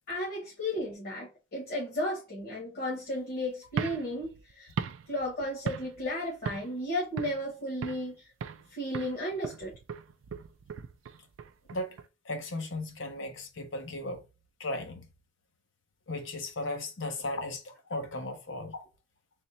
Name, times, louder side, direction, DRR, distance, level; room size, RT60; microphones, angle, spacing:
voice 1, 0.1-4.7 5.1-8.2 8.7-9.7, left 1 dB, 50° left, 1.2 m, -34 dB
sound 1, 3.7-6.1 6.5-6.8 7.2-8.1 8.4-8.7 8.9-12.1, right 6 dB, 90° right, 0.4 m, -38 dB
voice 2, 12.2-14.2 14.6-15.1 16.1-18.9, left 2 dB, 70° left, 0.8 m, -36 dB
3.5 x 2.1 x 4.0 m
head